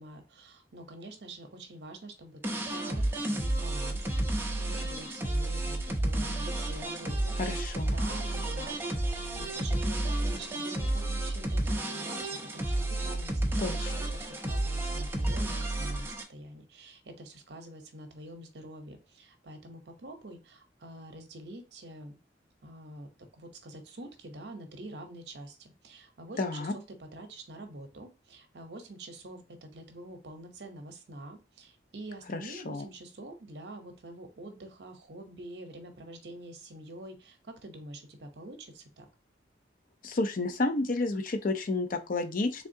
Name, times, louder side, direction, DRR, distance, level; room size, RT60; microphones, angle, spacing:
voice 1, 0.0-7.4 7.8-22.2 22.6-23.1 23.3-39.1, right 1 dB, 65° right, 6 dB, 0.8 m, -46 dB
sound 1, 2.4-16.2, right 1 dB, 10° right, 0.5 m, -31 dB
voice 2, 7.4-8.0 13.6-13.9 26.4-26.7 32.3-32.4 32.7-32.8 40.0-42.7, left 2 dB, 50° left, 8 dB, 0.5 m, -30 dB
3.5 x 3.5 x 2.6 m, 0.30 s
head